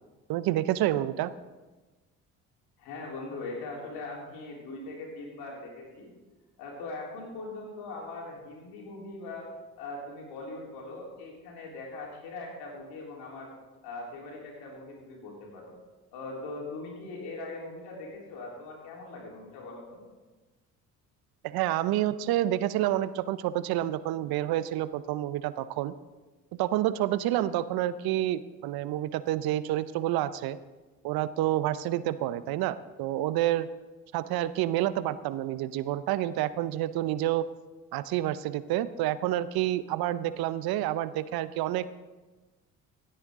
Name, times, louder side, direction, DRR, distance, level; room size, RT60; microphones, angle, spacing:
voice 1, 0.3-1.3 21.4-25.9 26.6-30.6 31.0-33.7 34.1-37.4 37.9-41.9, right 13 dB, 70° right, 16 dB, 0.6 m, -28 dB
voice 2, 2.8-6.1 6.6-9.5 9.8-13.5 13.8-15.7 16.1-20.0, left 2 dB, 80° left, -2 dB, 3.5 m, -41 dB
16.0 x 8.7 x 3.6 m, 1.2 s
hypercardioid pair, 60°, 38 cm